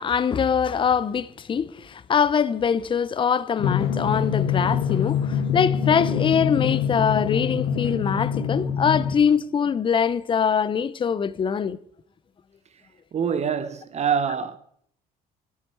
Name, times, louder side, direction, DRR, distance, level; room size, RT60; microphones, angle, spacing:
voice 1, 0.0-11.8, left 7 dB, 30° left, 0.6 m, -23 dB
Drum, 3.6-9.2, left 7 dB, 75° left, 1.5 m, -25 dB
voice 2, 13.1-14.6, right 7 dB, 40° right, 0.8 m, -25 dB
12.0 x 9.5 x 4.6 m
cardioid pair, 110°, 17 cm